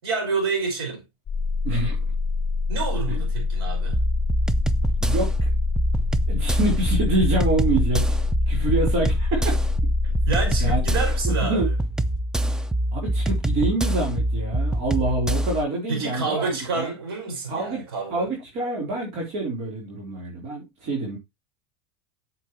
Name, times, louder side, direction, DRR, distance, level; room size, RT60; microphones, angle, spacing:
voice 1, 0.0-1.0 2.7-4.0 10.0-11.7 15.9-18.3, right 4 dB, 85° right, 5.5 m, -28 dB
sound 1, 1.3-11.3, left 4 dB, 25° left, 2.0 m, -26 dB
voice 2, 1.6-2.0 3.1-3.2 5.0-5.5 6.3-8.1 8.5-9.4 10.6-10.8 11.2-11.7 12.9-16.9 17.5-17.8 18.1-21.2, right 2 dB, 55° right, 4.0 m, -26 dB
sound 2, 3.9-15.6, right 1 dB, 5° right, 0.6 m, -25 dB
9.1 x 7.2 x 3.2 m
supercardioid pair, 110°, 13 cm